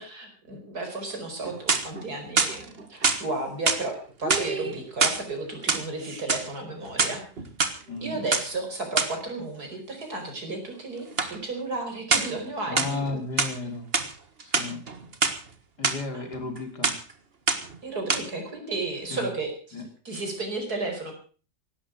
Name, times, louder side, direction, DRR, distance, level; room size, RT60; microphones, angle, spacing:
voice 1, 0.0-7.2 8.0-13.5 16.1-16.2 17.8-21.1, right 2 dB, 60° right, 4 dB, 5.4 m, -33 dB
sound 1, 1.4-2.0 2.4-3.2 3.7-3.9 4.2-5.2 5.6-6.5 6.9-7.7 8.3-8.5 9.0-9.2 11.2-11.4 12.1-12.4 12.8-13.6 13.9-14.1 14.4-15.4 15.8-16.0 16.3-16.6 16.8-17.1 17.5-17.8 18.1-18.2, right 4 dB, 35° right, 1.7 m, -25 dB
voice 2, 7.9-8.2 12.7-13.9 14.4-14.8 15.8-16.9 19.1-19.3 19.7-19.8, left 3 dB, 70° left, 5 dB, 4.0 m, -33 dB
17.0 x 12.5 x 6.2 m, 0.39 s
omnidirectional pair, 1.9 m